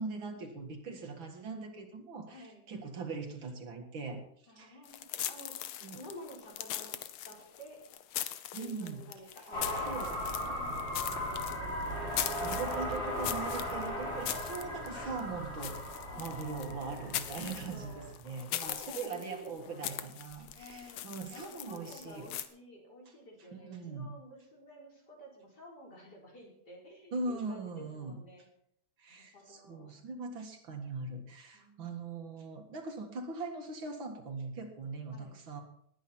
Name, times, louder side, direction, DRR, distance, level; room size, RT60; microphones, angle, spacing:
voice 1, 0.0-4.2 4.6-4.8 5.8-6.0 8.5-9.0 9.9-10.1 12.4-15.8 16.2-22.3 23.5-24.1 27.1-28.2 29.0-35.6, right 4 dB, 70° right, 4 dB, 2.5 m, -41 dB
voice 2, 2.3-2.6 4.5-5.6 5.9-7.0 7.2-7.8 8.6-12.2 16.1-16.8 17.3-18.1 18.6-20.1 20.5-21.0 21.3-28.4 29.2-30.0 31.5-32.1 35.1-35.4, equal, 50° left, -3 dB, 4.9 m, -51 dB
sound 1, 4.8-22.5, left 11 dB, 80° left, 1.7 m, -41 dB
sound 2, 9.5-18.1, left 1 dB, 30° left, 4.4 m, -37 dB
19.5 x 9.6 x 4.4 m, 0.69 s
omnidirectional pair, 2.3 m